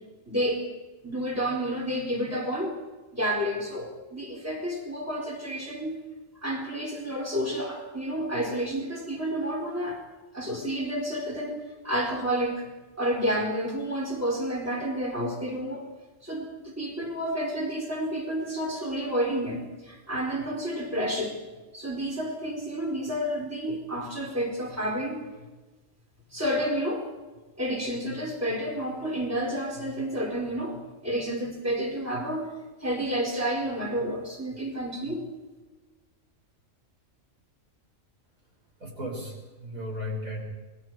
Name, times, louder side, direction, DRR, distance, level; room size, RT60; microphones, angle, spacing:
voice 1, 0.3-0.6 1.0-2.7 3.1-6.0 6.4-10.0 10.3-12.6 13.0-15.8 16.2-21.4 21.7-25.3 26.3-27.1 27.6-32.5 32.8-35.3, equal, 10° right, -1 dB, 4.2 m, -30 dB
voice 2, 38.8-40.4, left 1 dB, 90° right, -1 dB, 6.4 m, -35 dB
28.0 x 21.0 x 4.8 m, 1.2 s
omnidirectional pair, 1.4 m